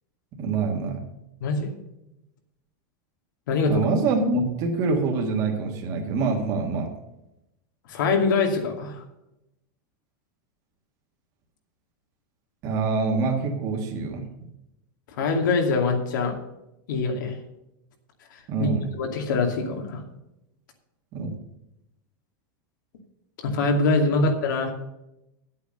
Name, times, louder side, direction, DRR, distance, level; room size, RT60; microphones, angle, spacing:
voice 1, 0.4-1.0 3.7-6.9 12.6-14.2 18.5-18.9 21.1-21.3, right 4 dB, 35° right, 1 dB, 2.0 m, -25 dB
voice 2, 1.4-1.7 3.5-3.8 7.9-9.0 15.2-16.4 16.9-17.3 18.3-18.7 19.0-20.0 23.4-24.7, left 3 dB, 75° left, 2 dB, 2.4 m, -24 dB
10.0 x 8.4 x 6.6 m, 0.89 s
supercardioid pair, 165°, 10 cm